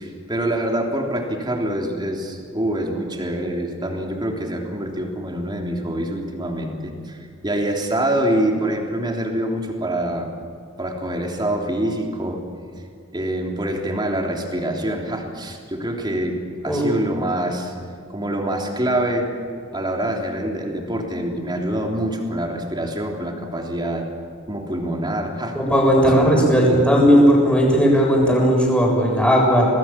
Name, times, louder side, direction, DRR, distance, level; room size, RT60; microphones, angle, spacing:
voice 1, 0.0-10.3 10.8-12.4 13.1-17.7 18.1-19.3 19.7-24.1 24.5-25.6 25.9-26.9, right 1 dB, 20° right, 1 dB, 3.4 m, -25 dB
voice 2, 25.5-29.7, equal, 5° left, -2 dB, 7.3 m, -16 dB
27.5 x 19.5 x 7.6 m, 2.3 s
head